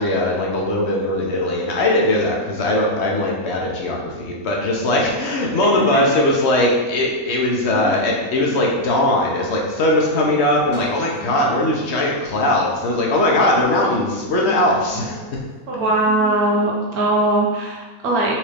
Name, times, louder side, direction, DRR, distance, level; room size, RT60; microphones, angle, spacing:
voice 1, 0.0-15.2, left 1 dB, 55° left, -2 dB, 0.9 m, -19 dB
voice 2, 5.8-6.2 7.7-8.0 15.7-18.3, right 2 dB, 80° right, -2 dB, 1.4 m, -20 dB
Guitar, 7.3-16.7, equal, 75° left, 1.5 m, -39 dB
4.3 x 3.6 x 3.3 m, 1.2 s
omnidirectional pair, 1.5 m